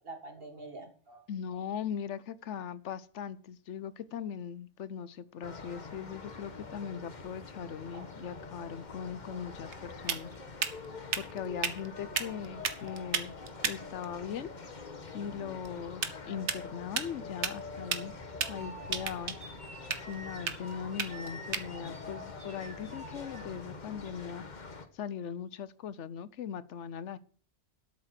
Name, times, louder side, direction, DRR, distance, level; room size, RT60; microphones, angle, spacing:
voice 1, 0.0-1.2 7.9-8.1 15.3-15.6 18.4-18.8 20.2-20.3, right 2 dB, 55° right, 6 dB, 2.1 m, -47 dB
voice 2, 1.3-10.3 11.2-13.4 13.6-14.5 15.1-18.1 18.5-19.3 20.1-24.4 24.9-27.2, left 8 dB, 85° left, 17 dB, 1.1 m, -40 dB
sound 1, 5.4-24.9, left 4 dB, 40° left, 1.3 m, -45 dB
sound 2, 8.8-23.5, right 6 dB, 75° right, 1.4 m, -38 dB
sound 3, 17.5-23.9, right 1 dB, 5° right, 1.7 m, -50 dB
12.5 x 7.4 x 5.9 m, 0.43 s
omnidirectional pair, 1.2 m